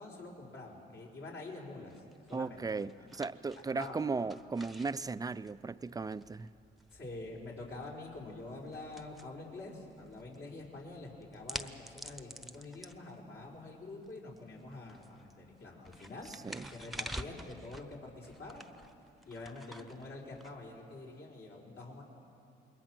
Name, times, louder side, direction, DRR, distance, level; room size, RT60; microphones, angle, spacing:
voice 1, 0.0-1.9 2.3-3.0 3.7-4.0 6.9-18.7 19.2-22.0, left 2 dB, 60° left, -3 dB, 4.7 m, -46 dB
sound 1, 1.9-21.1, right 1 dB, ahead, 1.0 m, -50 dB
voice 2, 2.3-6.5 16.4-16.7, right 4 dB, 20° right, 16 dB, 0.5 m, -36 dB
27.0 x 21.5 x 6.2 m, 2.6 s
cardioid pair, 90°, 20 cm